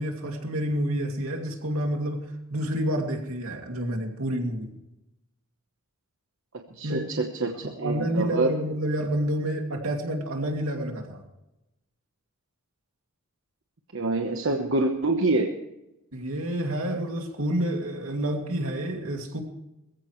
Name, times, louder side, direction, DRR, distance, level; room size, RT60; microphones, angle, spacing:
voice 1, 0.0-2.2 2.5-4.7 6.8-7.1 7.6-11.2 16.1-19.4, right 1 dB, 80° right, 3 dB, 2.6 m, -29 dB
voice 2, 6.8-8.5 13.9-15.5, right 2 dB, 60° right, 3 dB, 1.1 m, -26 dB
21.5 x 15.0 x 3.2 m, 0.93 s
head